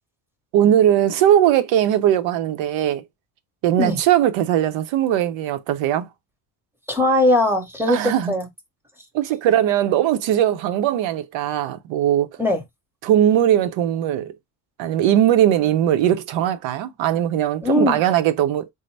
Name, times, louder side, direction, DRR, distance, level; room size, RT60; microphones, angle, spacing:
voice 1, 0.5-3.0 3.6-6.1 7.9-8.3 9.1-12.3 13.0-14.4 14.8-18.7, right 11 dB, 70° right, 0.7 m, -19 dB
voice 2, 6.9-8.5 12.4-12.6 17.6-18.0, left 1 dB, 5° right, 1.0 m, -20 dB
4.0 x 2.0 x 3.2 m
cardioid pair, 100°, 48 cm